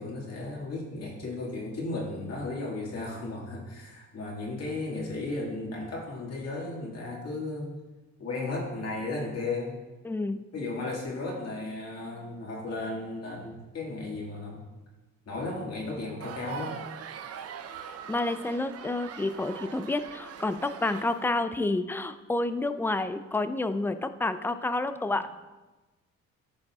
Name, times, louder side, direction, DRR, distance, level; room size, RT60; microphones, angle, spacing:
voice 1, 0.0-7.8 8.2-9.8 10.5-14.6 15.3-16.8, left 2 dB, 55° left, -3 dB, 2.0 m, -35 dB
voice 2, 10.0-10.4 18.1-25.4, left 2 dB, 5° left, 11 dB, 0.4 m, -29 dB
sound 1, 16.2-21.2, right 7 dB, 55° right, 0.6 m, -42 dB
15.0 x 5.3 x 2.4 m, 1.1 s
cardioid pair, 90°, 30 cm